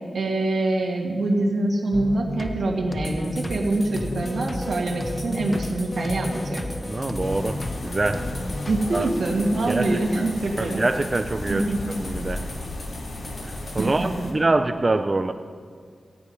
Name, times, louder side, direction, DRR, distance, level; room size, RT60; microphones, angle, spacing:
voice 1, 0.1-6.6 8.7-10.8 11.5-11.9 13.8-14.1, right 2 dB, 90° right, -1 dB, 2.0 m, -25 dB
sound 1, 1.9-9.1, left 1 dB, 20° left, 0.8 m, -32 dB
sound 2, 3.0-13.9, left 2 dB, 35° left, 2.2 m, -42 dB
voice 2, 6.9-8.3 8.9-9.1 9.7-9.8 10.2-10.3 10.6-11.7 12.0-12.4 13.5-15.3, right 2 dB, 30° right, 8 dB, 0.4 m, -25 dB
sound 3, 7.2-14.3, left 1 dB, 80° left, 2.4 m, -35 dB
16.5 x 9.6 x 5.4 m, 2.1 s
wide cardioid pair, 110°, 0 cm